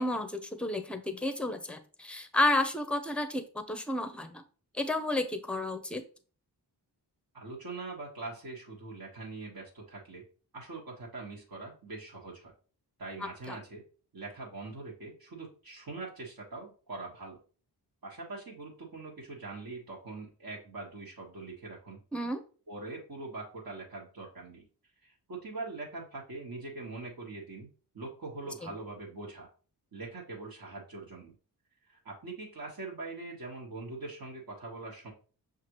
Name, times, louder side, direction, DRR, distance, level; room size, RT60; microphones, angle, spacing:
voice 1, 0.0-4.4 4.7-6.0 13.5-13.6 22.1-22.4 28.6-28.7, left 2 dB, 5° left, 9 dB, 0.6 m, -31 dB
voice 2, 7.3-10.2 10.5-12.5 13.0-13.8 14.1-17.4 18.0-22.0 22.7-24.7 25.0-27.7 27.9-29.5 29.9-31.4 31.9-35.1, right 3 dB, 55° right, -3 dB, 1.4 m, -42 dB
5.8 x 2.5 x 2.9 m, 0.38 s
cardioid pair, 60°, 41 cm